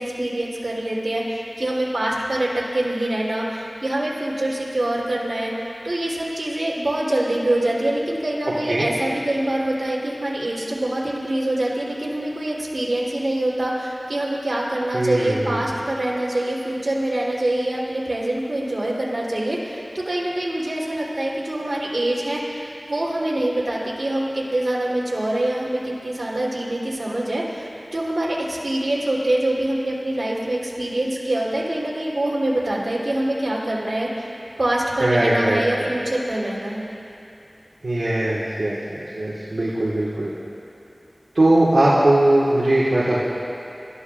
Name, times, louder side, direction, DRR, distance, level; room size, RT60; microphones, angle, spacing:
voice 1, 0.0-5.5 5.8-34.3 34.6-36.9, right 1 dB, 65° right, -6 dB, 3.8 m, -25 dB
voice 2, 14.9-15.6 35.0-35.9 37.8-40.3 41.3-43.2, right 1 dB, 85° right, -9 dB, 1.9 m, -20 dB
26.5 x 14.0 x 2.6 m, 2.7 s
wide cardioid pair, 40°, 0 cm